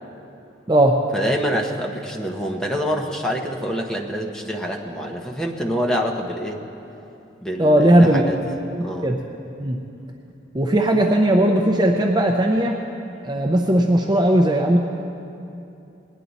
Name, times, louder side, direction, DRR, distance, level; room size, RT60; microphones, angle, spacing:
voice 1, 1.1-6.6 7.4-8.4 8.8-9.1, equal, 5° left, 0 dB, 0.8 m, -26 dB
voice 2, 7.6-8.2 8.7-9.2 9.6-9.8 10.5-12.8 13.2-14.8, right 1 dB, 20° right, 2 dB, 0.5 m, -17 dB
19.5 x 10.0 x 4.0 m, 2.8 s
head